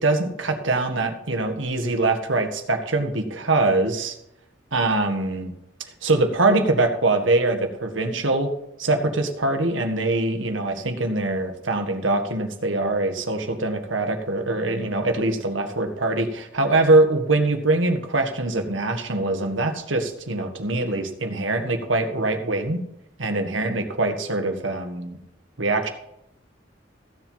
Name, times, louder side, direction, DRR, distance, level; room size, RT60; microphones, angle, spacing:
voice 1, 0.0-4.1 4.7-5.5 6.0-8.5 8.8-22.8 23.2-25.2 25.6-25.9, right 2 dB, 90° right, 6 dB, 1.7 m, -23 dB
15.0 x 7.6 x 5.7 m, 0.79 s
head